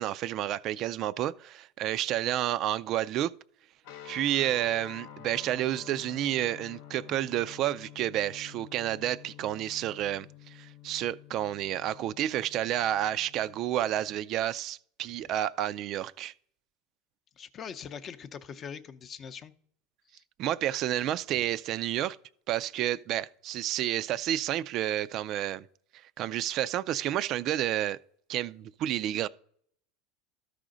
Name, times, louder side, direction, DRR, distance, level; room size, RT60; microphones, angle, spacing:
voice 1, 0.0-3.3 4.1-16.3 20.4-22.2 22.5-25.6 26.2-28.0 28.3-29.3, right 12 dB, 50° right, 0.3 m, -30 dB
sound 1, 3.8-14.2, left 10 dB, 75° left, 0.9 m, -49 dB
voice 2, 17.4-19.5 20.1-20.2 21.4-21.5, left 7 dB, 35° left, 0.6 m, -42 dB
13.0 x 5.0 x 3.8 m
supercardioid pair, 105°, 0 cm